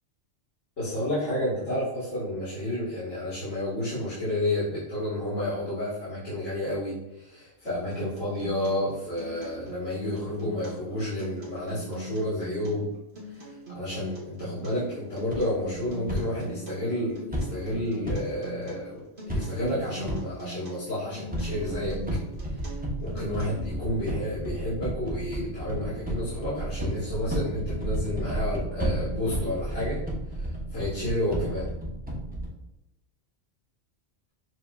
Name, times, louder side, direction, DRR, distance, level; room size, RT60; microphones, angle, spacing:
voice 1, 0.8-12.9 13.3-22.0 22.4-30.0 30.3-31.7, left 1 dB, 80° left, -12 dB, 2.1 m, -31 dB
Acoustic guitar, 7.7-23.7, equal, 55° right, 1.5 m, -42 dB
sound 1, 15.3-16.2 17.3-18.2 19.3-19.8 20.1-20.2 21.3-32.5, right 1 dB, 10° right, 0.7 m, -32 dB
7.2 x 2.8 x 2.3 m, 0.92 s
omnidirectional pair, 1.3 m